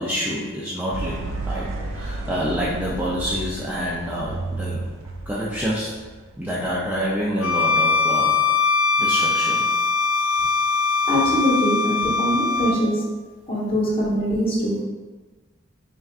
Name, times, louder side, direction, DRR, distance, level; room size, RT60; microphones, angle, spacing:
voice 1, 0.0-4.9 5.3-6.0 6.4-8.4 9.0-9.7, equal, 10° right, -7 dB, 0.4 m, -27 dB
Amsterdam Street Art Market Harp, 0.9-7.3, right 2 dB, 65° right, 0.5 m, -32 dB
Bowed string instrument, 7.4-12.8, left 4 dB, 75° left, 0.4 m, -21 dB
voice 2, 11.1-13.0 13.5-14.8, equal, 25° left, -7 dB, 1.2 m, -22 dB
4.3 x 3.7 x 2.4 m, 1.3 s
head